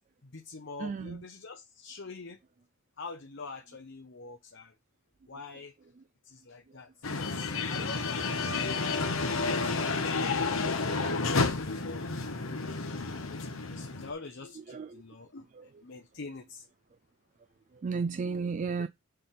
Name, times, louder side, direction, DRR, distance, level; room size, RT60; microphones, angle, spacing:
voice 1, 0.2-2.4 3.0-4.7 5.3-5.7 6.2-10.2 10.6-12.4 12.9-16.6 18.8-18.9, left 4 dB, 55° left, 0.8 m, -46 dB
voice 2, 0.8-1.2 6.0-6.1 8.5-8.6 14.7-15.0 15.5-15.7 17.7-18.9, right 5 dB, 35° right, 0.3 m, -34 dB
sound 1, 7.0-14.1, left 3 dB, 75° left, 1.1 m, -31 dB
6.8 x 3.4 x 5.7 m
head